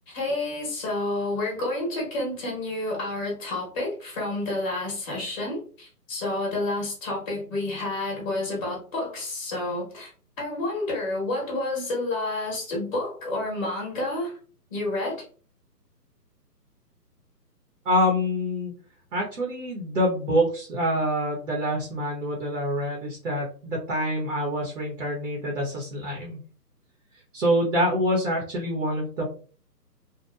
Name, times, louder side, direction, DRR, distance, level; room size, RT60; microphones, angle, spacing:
voice 1, 0.1-10.1 10.4-14.4 14.7-15.2, left 2 dB, 20° left, -3 dB, 0.8 m, -29 dB
voice 2, 17.8-18.7 19.1-26.4 27.3-29.2, equal, 50° right, -2 dB, 0.9 m, -26 dB
2.8 x 2.2 x 2.2 m, 0.40 s
figure-of-eight pair, 145°, 49 cm